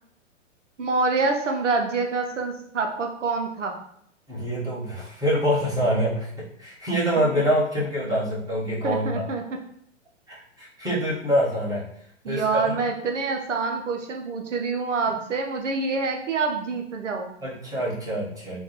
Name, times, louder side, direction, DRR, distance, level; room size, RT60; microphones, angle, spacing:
voice 1, 0.8-3.8 5.8-6.0 8.8-9.4 12.2-17.4, right 4 dB, 80° right, 3 dB, 0.6 m, -26 dB
voice 2, 4.3-9.2 10.3-11.8 12.2-12.7 17.4-18.6, equal, 10° right, -8 dB, 1.3 m, -25 dB
3.7 x 2.2 x 3.0 m, 0.69 s
figure-of-eight pair, 115°, 37 cm